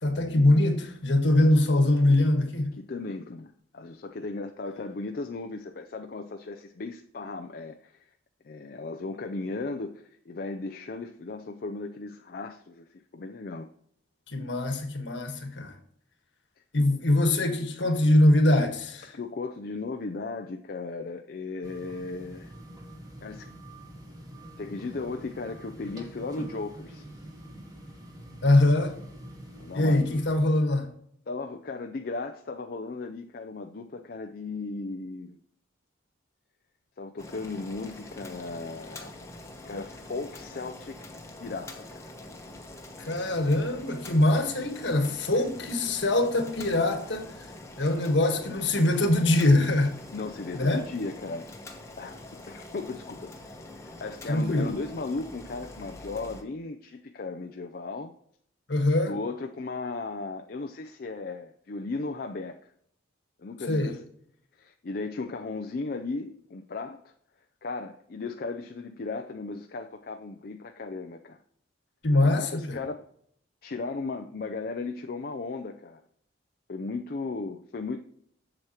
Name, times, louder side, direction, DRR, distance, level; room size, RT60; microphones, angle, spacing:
voice 1, 0.0-2.7 14.3-15.7 16.7-19.1 28.4-28.9 29.7-30.9 43.0-47.5 47.8-50.0 50.5-50.8 54.3-54.7 58.7-59.1 63.7-63.9 72.0-72.8, left 1 dB, 70° left, 1.5 m, -23 dB
voice 2, 2.8-8.0 8.4-13.7 19.1-22.5 23.2-23.5 24.6-27.0 29.6-30.2 31.3-35.4 37.0-39.1 39.6-41.0 41.4-42.0 45.3-45.5 50.1-52.2 52.5-58.1 59.0-62.6 63.4-64.0 64.6-67.0 67.6-71.4 72.2-73.0 73.6-76.0 76.7-78.0, left 3 dB, 50° left, 0.5 m, -36 dB
sound 1, 21.6-30.5, right 1 dB, 20° right, 1.3 m, -45 dB
Boiling, 37.2-56.4, left 2 dB, 15° left, 0.9 m, -45 dB
7.8 x 7.1 x 2.9 m
head